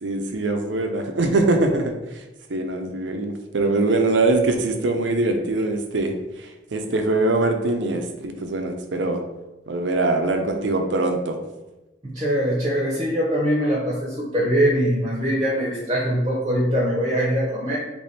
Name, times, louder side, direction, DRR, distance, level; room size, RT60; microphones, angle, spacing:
voice 1, 0.0-1.9 2.5-6.1 6.7-9.2 9.7-11.4, right 2 dB, 85° right, 5 dB, 0.6 m, -22 dB
voice 2, 12.0-17.8, equal, 25° right, -4 dB, 0.8 m, -22 dB
3.4 x 3.0 x 4.2 m, 1.0 s
head